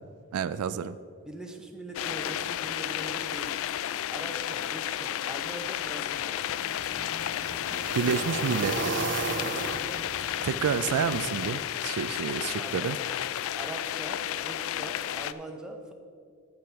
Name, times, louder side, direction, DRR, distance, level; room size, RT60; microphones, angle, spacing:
voice 1, 0.3-1.0 7.9-9.1 10.4-13.0, right 7 dB, 75° right, 14 dB, 0.3 m, -29 dB
voice 2, 1.3-3.7 4.1-6.4 9.3-9.6 12.6-13.0 13.6-15.9, right 1 dB, 5° right, 2 dB, 0.8 m, -41 dB
sound 1, 1.9-15.3, left 11 dB, 65° left, 0.3 m, -32 dB
sound 2, 6.5-11.5, right 4 dB, 55° right, 0.7 m, -35 dB
7.6 x 7.0 x 5.9 m, 2.1 s
head